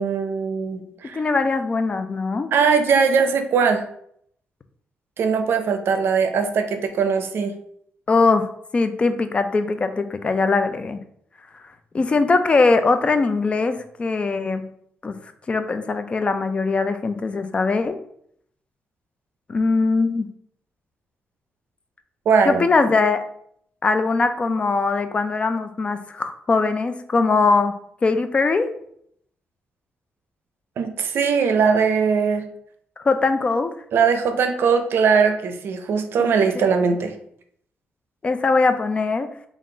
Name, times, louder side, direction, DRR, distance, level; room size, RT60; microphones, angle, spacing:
voice 1, 0.0-1.2 2.5-3.8 5.2-7.5 22.3-22.6 30.8-32.5 33.9-37.1, right 5 dB, 65° right, 7 dB, 0.5 m, -20 dB
voice 2, 1.1-2.5 8.1-8.5 8.7-11.0 11.9-14.7 15.0-15.1 15.5-18.0 19.5-20.3 22.5-23.2 23.8-27.7 28.0-28.7 33.0-33.7 36.2-36.3 38.2-39.3, left 3 dB, 30° left, 9 dB, 0.3 m, -21 dB
3.7 x 2.4 x 3.8 m, 0.69 s
cardioid pair, 130°, 4 cm